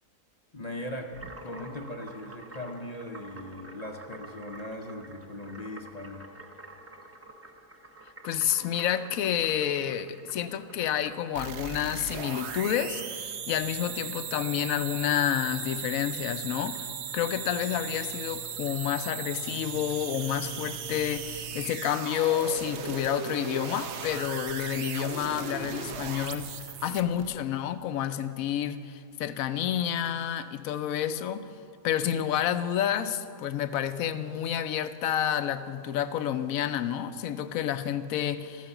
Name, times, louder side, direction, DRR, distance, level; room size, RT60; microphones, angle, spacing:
voice 1, 0.5-6.3, left 1 dB, 40° left, 3 dB, 0.6 m, -39 dB
sound 1, 1.1-20.2, right 1 dB, 15° right, 0.5 m, -50 dB
voice 2, 8.2-31.5 31.8-38.7, left 10 dB, 75° left, 12 dB, 1.0 m, -29 dB
sound 2, 11.4-27.3, right 7 dB, 60° right, 0.9 m, -37 dB
13.0 x 9.2 x 7.1 m, 2.3 s
omnidirectional pair, 1.6 m